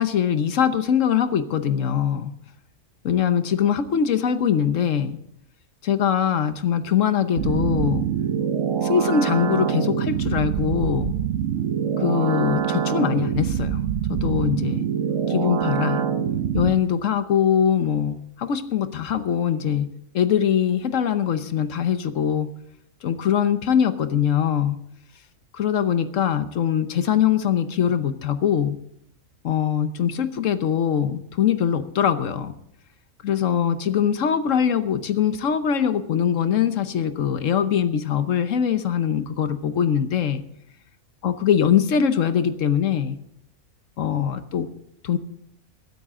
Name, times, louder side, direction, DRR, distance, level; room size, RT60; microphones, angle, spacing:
voice 1, 0.0-2.3 3.0-5.2 5.8-8.1 8.8-11.2 12.0-13.8 14.1-14.9 15.3-16.0 16.5-22.5 23.0-24.8 25.5-28.8 29.4-32.5 33.2-40.4 41.2-43.2 44.0-44.7 45.0-45.2, left 8 dB, 65° left, 11 dB, 1.2 m, -22 dB
sound 1, 7.4-16.7, right 8 dB, 65° right, 1.1 m, -24 dB
24.0 x 9.2 x 3.7 m, 0.73 s
omnidirectional pair, 1.5 m